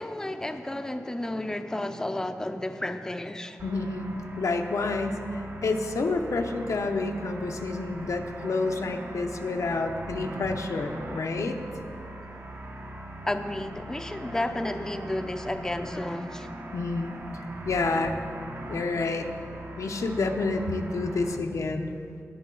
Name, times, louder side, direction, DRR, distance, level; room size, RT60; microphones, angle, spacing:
voice 1, 0.0-3.6 13.3-16.5, left 1 dB, 10° left, 6 dB, 0.5 m, -32 dB
voice 2, 3.6-11.6 16.7-17.2 17.6-18.2 18.7-19.3 19.8-21.9, left 3 dB, 85° left, 4 dB, 0.8 m, -29 dB
sound 1, 3.6-21.4, right 1 dB, 55° right, 1.0 m, -41 dB
18.0 x 7.5 x 3.9 m, 2.4 s
wide cardioid pair, 110°, 5 cm